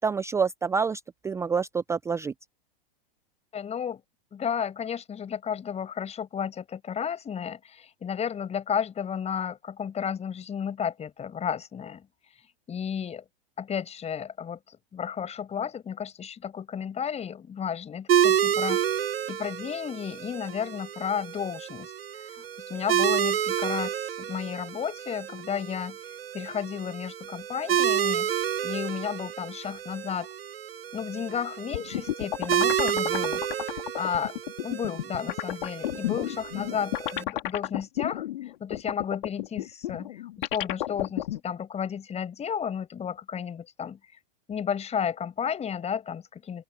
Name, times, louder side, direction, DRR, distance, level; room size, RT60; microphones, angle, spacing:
voice 1, 0.0-2.3, right 5 dB, 10° right, 0.5 m, -27 dB
voice 2, 3.5-4.0 4.3-12.1 12.7-13.2 13.6-26.0 26.3-28.3 28.6-30.3 30.9-34.4 34.6-44.0 44.5-46.6, left 7 dB, 20° left, 5.4 m, -33 dB
sound 1, 18.1-37.2, right 10 dB, 85° right, 0.9 m, -30 dB
sound 2, 31.7-41.4, left 14 dB, 65° left, 3.5 m, -32 dB
open air
hypercardioid pair, 105°, 29 cm